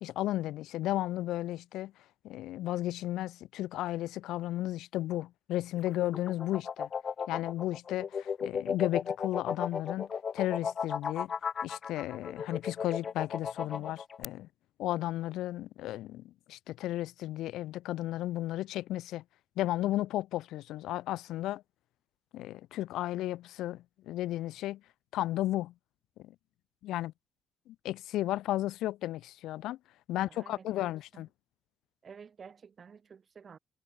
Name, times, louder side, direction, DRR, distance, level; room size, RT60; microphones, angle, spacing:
voice 1, 0.0-1.9 2.2-6.9 7.3-10.1 10.3-11.3 11.6-14.5 14.8-19.2 19.6-21.6 22.3-24.8 25.1-25.7 26.2-26.3 26.8-27.1 27.7-29.8 30.1-31.3, left 15 dB, 90° left, 2.1 m, -34 dB
sound 1, 5.8-14.2, left 6 dB, 45° left, 1.1 m, -35 dB
voice 2, 30.1-31.2 32.0-33.6, right 6 dB, 45° right, 6.2 m, -52 dB
cardioid pair, 90°, 0 cm